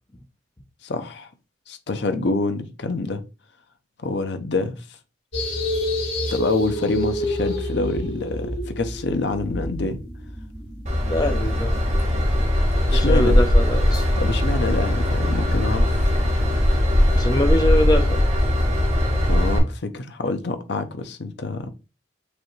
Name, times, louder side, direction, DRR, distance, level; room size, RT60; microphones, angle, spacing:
voice 1, 0.8-1.3 1.7-3.2 4.0-4.8 6.3-10.0 12.9-13.4 14.2-16.0 19.3-21.7, left 3 dB, 60° left, 0.6 m, -26 dB
sound 1, 5.3-12.4, left 1 dB, 75° left, 2.1 m, -29 dB
Train / Engine, 10.9-19.6, left 1 dB, 35° right, 1.4 m, -19 dB
voice 2, 11.1-11.8 12.9-14.0 17.1-18.2, left 1 dB, 20° left, 0.5 m, -23 dB
5.0 x 3.4 x 3.2 m
head